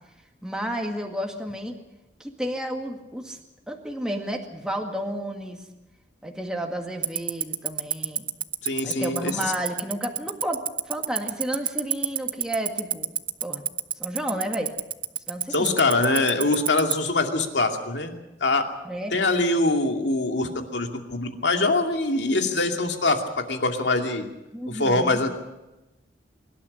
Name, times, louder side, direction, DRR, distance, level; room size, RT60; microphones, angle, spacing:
voice 1, 0.4-1.8 2.2-3.4 3.7-5.6 6.2-8.3 8.8-13.1 13.4-13.6 14.0-14.7 15.3-15.8 18.8-19.2 24.5-25.2, right 1 dB, 5° right, 2 dB, 2.0 m, -31 dB
Tick-tock, 7.0-16.9, right 9 dB, 25° right, 0.8 m, -24 dB
voice 2, 8.6-9.4 15.5-18.1 18.4-18.6 19.1-24.3 24.7-25.3, left 2 dB, 70° left, 4 dB, 2.5 m, -23 dB
24.0 x 12.5 x 9.9 m, 1.0 s
head